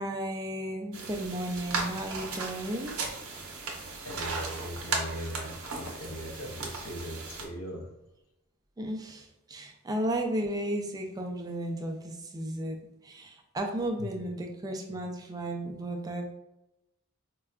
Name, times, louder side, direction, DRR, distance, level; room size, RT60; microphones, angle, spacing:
voice 1, 0.0-2.9 8.8-12.8 13.0-16.3, right 1 dB, 20° right, 2 dB, 0.3 m, -34 dB
sound 1, 0.9-7.5, right 4 dB, 65° right, 0.6 m, -36 dB
voice 2, 4.0-7.9 14.0-14.1, equal, 75° left, 1 dB, 0.7 m, -39 dB
4.5 x 2.1 x 2.4 m, 0.89 s
head